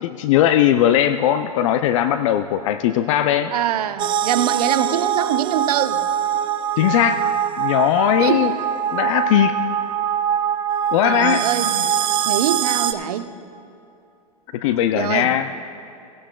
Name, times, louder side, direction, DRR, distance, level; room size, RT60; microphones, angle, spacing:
voice 1, 0.0-3.5 6.8-7.2 7.6-8.5 8.9-9.6 10.9-11.4 14.5-15.5, left 11 dB, 55° left, 11 dB, 0.4 m, -19 dB
voice 2, 3.5-6.1 8.2-8.5 11.0-11.9 12.3-13.3 14.9-15.3, right 10 dB, 70° right, 11 dB, 0.7 m, -23 dB
sound 1, 4.0-12.9, right 9 dB, 25° right, 0.4 m, -23 dB
17.5 x 11.5 x 2.3 m, 2.7 s
hypercardioid pair, 120°, 20 cm